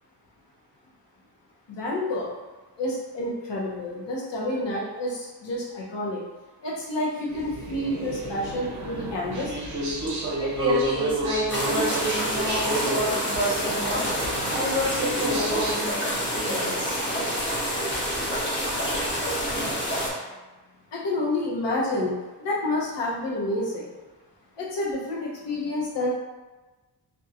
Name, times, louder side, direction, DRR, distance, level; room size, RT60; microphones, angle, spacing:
voice 1, 1.7-2.3 2.8-6.2 6.6-9.6 20.9-23.9 24.6-26.1, left 1 dB, 85° left, -4 dB, 0.8 m, -29 dB
sound 1, 7.3-15.8, right 1 dB, 45° right, 0.5 m, -31 dB
voice 2, 10.4-14.1 14.5-17.0, right 1 dB, 10° right, -8 dB, 0.7 m, -29 dB
sound 2, 11.5-20.1, equal, 30° left, 0.6 m, -28 dB
2.7 x 2.2 x 2.4 m, 1.2 s
wide cardioid pair, 145°, 42 cm